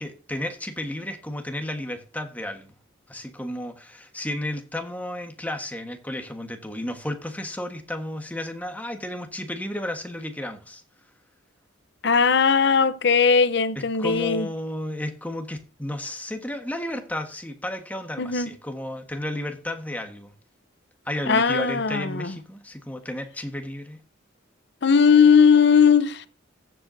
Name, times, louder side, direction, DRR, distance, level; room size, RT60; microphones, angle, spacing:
voice 1, 0.0-2.7 3.1-10.8 13.7-20.3 21.0-24.0, left 1 dB, 10° left, 1.4 m, -33 dB
voice 2, 12.0-14.5 18.2-18.5 21.3-22.4 24.8-26.2, left 6 dB, 60° left, 0.8 m, -18 dB
14.5 x 7.7 x 2.7 m
head